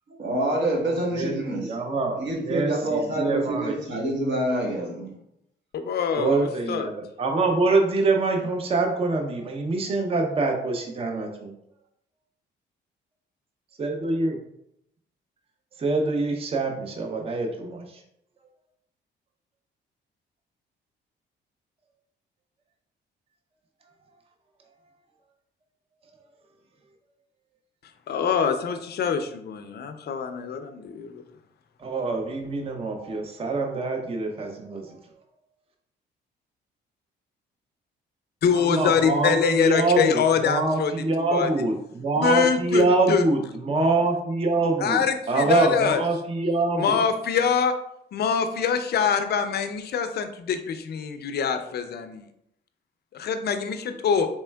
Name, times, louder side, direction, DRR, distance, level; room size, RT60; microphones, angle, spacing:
voice 1, 0.1-1.7 2.2-5.1, right 1 dB, 65° right, -1 dB, 1.2 m, -26 dB
voice 2, 1.1-3.8 6.2-11.5 13.8-14.4 15.8-18.0 31.8-35.0 38.5-45.0 45.3-47.0, right 3 dB, 30° right, 3 dB, 0.5 m, -25 dB
voice 3, 5.7-6.9 28.1-31.2 38.4-40.9 41.3-41.5 42.2-43.2 44.8-46.0 46.8-47.8 48.1-52.2 53.1-54.3, left 6 dB, 55° left, 8 dB, 0.4 m, -24 dB
4.3 x 3.1 x 2.2 m, 0.76 s
cardioid pair, 90°, 20 cm